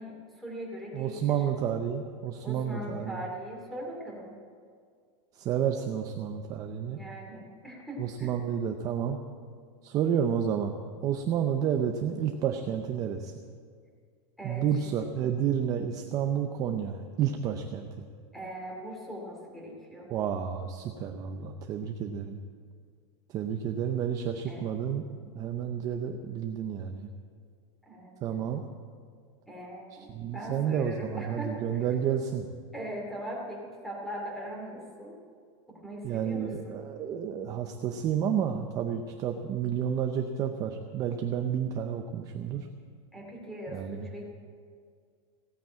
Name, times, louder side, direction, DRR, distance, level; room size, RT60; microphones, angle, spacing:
voice 1, 0.0-1.4 2.4-4.4 6.9-8.3 14.4-14.7 18.3-20.1 24.5-24.7 27.9-28.2 29.5-31.9 32.7-35.2 35.7-36.8 43.1-44.2, right 1 dB, ahead, -2 dB, 2.5 m, -40 dB
voice 2, 0.9-3.2 5.4-7.0 8.0-9.2 9.8-13.3 14.4-18.1 20.1-22.4 23.3-25.0 25.4-27.1 28.2-28.6 29.9-32.5 36.0-42.7 43.7-44.1, right 8 dB, 25° right, 5 dB, 0.6 m, -30 dB
16.5 x 9.2 x 8.6 m, 2.1 s
supercardioid pair, 180°, 15 cm